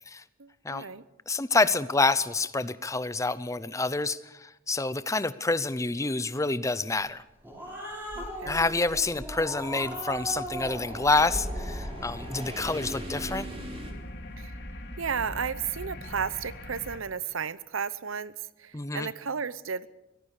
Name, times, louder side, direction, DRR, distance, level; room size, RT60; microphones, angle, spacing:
voice 1, 0.4-1.0 8.1-8.7 14.4-14.6 15.0-19.9, right 6 dB, 90° right, 17 dB, 0.8 m, -33 dB
voice 2, 1.3-7.2 8.4-13.5 18.7-19.1, left 3 dB, 15° left, 16 dB, 0.7 m, -28 dB
Growling, 7.2-14.0, equal, 10° right, 6.5 m, -39 dB
sound 1, 7.9-13.9, right 1 dB, 30° right, 3.2 m, -41 dB
sound 2, 9.8-17.0, left 1 dB, 55° left, 2.9 m, -42 dB
24.0 x 17.5 x 6.6 m, 0.96 s
head